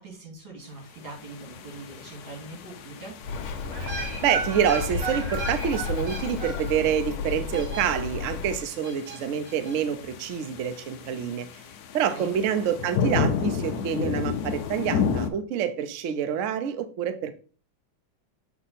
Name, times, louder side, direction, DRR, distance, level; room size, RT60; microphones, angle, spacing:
voice 1, 0.0-3.2 12.1-12.4, right 2 dB, 65° right, 3.1 m, -42 dB
sound 1, 1.0-15.3, left 6 dB, 70° left, 0.9 m, -33 dB
Bird, 3.2-8.7, left 5 dB, 85° left, 1.5 m, -33 dB
sound 2, 3.3-8.3 8.8-9.8 10.0-10.1, right 3 dB, 40° right, 1.1 m, -36 dB
voice 2, 4.2-11.5 11.9-17.3, right 8 dB, 85° right, 0.6 m, -27 dB
6.9 x 3.6 x 4.1 m
omnidirectional pair, 2.3 m